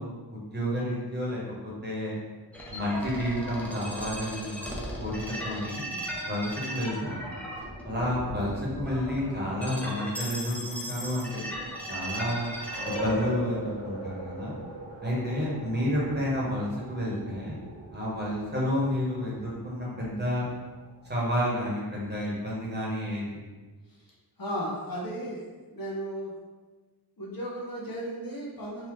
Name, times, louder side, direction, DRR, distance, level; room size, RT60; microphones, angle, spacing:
voice 1, 0.0-2.2 2.7-5.9 6.2-7.2 7.8-11.3 11.9-12.5 12.8-14.5 15.0-17.6 17.9-20.5 21.1-23.4, equal, 25° right, -5 dB, 1.1 m, -30 dB
sound 1, 2.5-13.3, equal, 5° left, 0.6 m, -37 dB
sound 2, 10.4-21.6, equal, 30° left, 1.1 m, -41 dB
voice 2, 24.4-26.4 27.2-28.9, equal, 60° left, -4 dB, 0.9 m, -35 dB
3.8 x 2.7 x 3.1 m, 1.3 s
wide cardioid pair, 105°, 40 cm